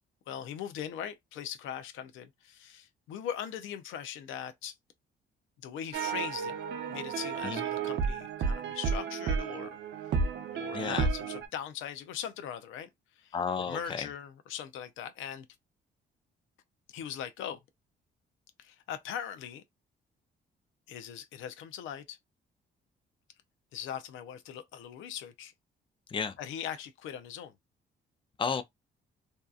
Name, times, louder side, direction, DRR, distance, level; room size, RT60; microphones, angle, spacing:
voice 1, 0.3-4.7 5.6-6.6 6.9-9.8 10.5-12.9 13.2-13.4 13.7-15.5 16.9-17.6 18.6-19.6 20.9-22.2 23.7-25.5 26.4-27.6, left 9 dB, 85° left, 0.5 m, -40 dB
sound 1, 5.9-11.5, right 5 dB, 65° right, 0.6 m, -32 dB
voice 2, 10.7-11.1 13.3-14.1 26.1-26.4 28.4-28.6, left 6 dB, 25° left, 0.4 m, -32 dB
2.7 x 2.3 x 2.3 m
cardioid pair, 90°, 20 cm